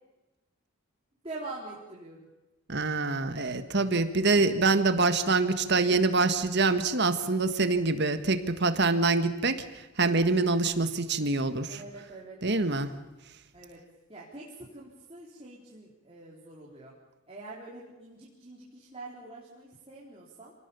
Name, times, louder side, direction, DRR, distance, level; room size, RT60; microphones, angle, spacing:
voice 1, 1.2-2.3 11.7-12.4 13.5-13.8 14.1-17.0 17.3-20.5, right 2 dB, 25° right, -5 dB, 3.9 m, -44 dB
voice 2, 2.7-11.8 12.4-12.9, right 3 dB, 50° right, 9 dB, 1.6 m, -25 dB
27.0 x 18.5 x 7.0 m, 1.1 s
head